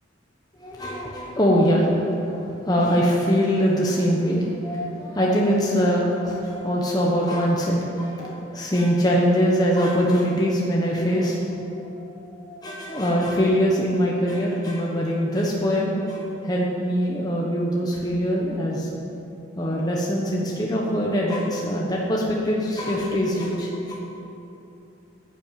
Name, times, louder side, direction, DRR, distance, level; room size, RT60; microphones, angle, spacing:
voice 1, 0.6-18.9 19.6-24.0, equal, 20° left, -3 dB, 1.2 m, -23 dB
10.5 x 7.9 x 9.1 m, 2.8 s
head